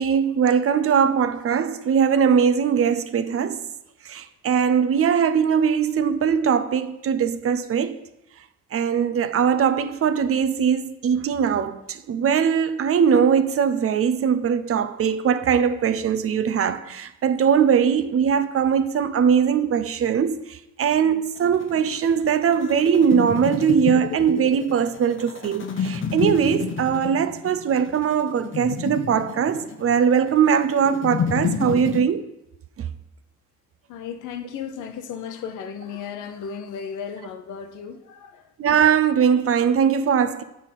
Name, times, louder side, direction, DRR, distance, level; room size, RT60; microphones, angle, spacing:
voice 1, 0.0-3.6 4.1-8.0 8.7-32.3 38.6-40.4, right 7 dB, 50° right, 0.6 m, -21 dB
sound 1, 21.4-32.0, left 6 dB, 40° left, 0.9 m, -30 dB
voice 2, 33.9-38.5, left 7 dB, 90° left, 0.8 m, -35 dB
8.6 x 3.6 x 5.7 m
cardioid pair, 90°, 30 cm